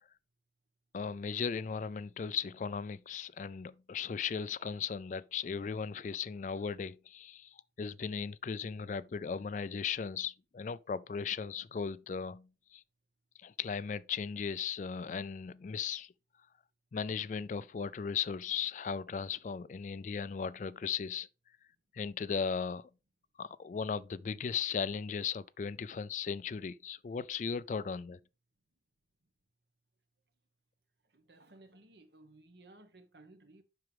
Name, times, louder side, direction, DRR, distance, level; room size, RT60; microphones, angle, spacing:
voice 1, 0.9-12.8 13.4-16.1 16.9-21.3 21.9-22.9 23.4-28.2, left 6 dB, 45° left, 0.3 m, -37 dB
voice 2, 31.1-33.6, right 2 dB, 70° right, 1.3 m, -58 dB
7.7 x 6.0 x 3.4 m
head